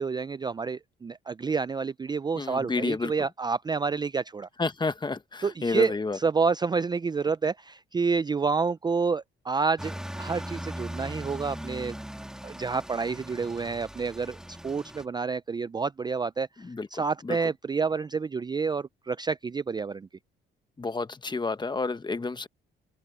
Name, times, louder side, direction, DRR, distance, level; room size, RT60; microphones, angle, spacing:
voice 1, 0.0-4.5 5.4-11.9 12.4-16.5 16.9-20.1, right 5 dB, 20° right, 0.4 m, -29 dB
voice 2, 2.4-3.1 4.6-6.2 16.6-16.9 17.2-17.4 20.8-22.5, left 3 dB, 20° left, 1.2 m, -30 dB
sound 1, 9.8-15.1, equal, 5° right, 1.8 m, -39 dB
cardioid pair, 90°, 20 cm